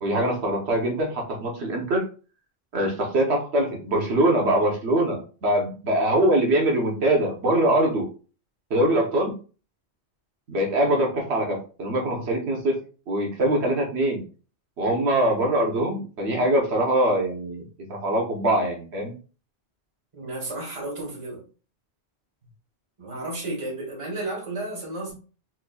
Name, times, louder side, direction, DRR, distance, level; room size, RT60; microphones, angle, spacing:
voice 1, 0.0-2.0 2.7-8.1 8.7-9.3 10.5-12.8 13.1-14.2 14.8-19.1, right 1 dB, 80° right, 0 dB, 1.2 m, -23 dB
voice 2, 20.1-21.4 23.0-25.1, right 2 dB, 30° right, -1 dB, 1.2 m, -32 dB
4.6 x 2.6 x 2.3 m, 0.36 s
omnidirectional pair, 1.1 m